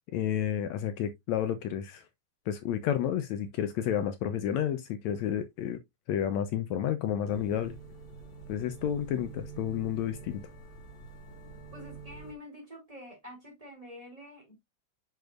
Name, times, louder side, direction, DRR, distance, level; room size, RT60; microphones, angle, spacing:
voice 1, 0.1-2.0 2.5-5.8 6.1-7.7 8.5-10.4, left 10 dB, 75° left, 2.0 m, -31 dB
sound 1, 7.3-12.3, right 4 dB, 45° left, 2.2 m, -46 dB
voice 2, 11.7-14.6, left 1 dB, 10° right, 4.1 m, -47 dB
6.9 x 6.2 x 2.5 m
omnidirectional pair, 3.3 m